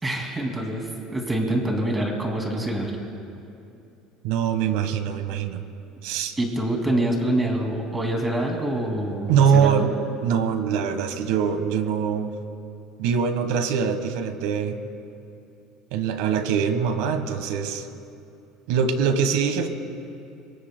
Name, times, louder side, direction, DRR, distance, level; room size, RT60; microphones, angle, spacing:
voice 1, 0.0-2.9 6.4-9.8, right 1 dB, 10° right, 2 dB, 2.4 m, -25 dB
voice 2, 4.2-5.6 6.0-6.3 9.3-9.9 10.2-12.3 13.0-14.8 15.9-17.9 18.7-19.7, right 7 dB, 80° right, 9 dB, 1.3 m, -23 dB
27.0 x 23.5 x 2.2 m, 2.8 s
cardioid pair, 150°, 0 cm